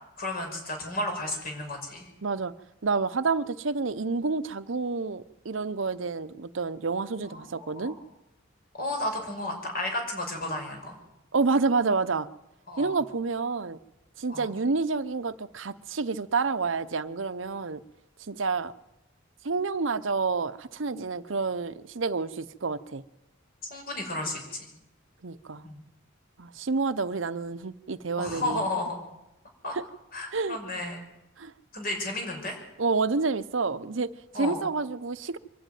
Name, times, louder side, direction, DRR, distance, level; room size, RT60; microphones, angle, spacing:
voice 1, 0.2-2.1 7.3-8.0 8.8-11.0 12.7-12.9 14.3-14.5 23.7-24.7 25.6-25.8 28.2-29.0 29.6-29.7 30.1-31.0 31.7-32.6 34.3-34.7, left 1 dB, 50° left, 3 dB, 5.7 m, -33 dB
voice 2, 2.2-2.5 2.8-8.0 11.3-12.3 12.8-13.8 14.2-17.8 18.2-18.7 19.4-23.0 25.2-25.7 26.4-28.6 29.7-29.8 30.3-30.6 31.4-31.5 32.8-35.4, right 4 dB, 70° right, 13 dB, 0.8 m, -29 dB
24.5 x 12.0 x 9.2 m, 0.94 s
head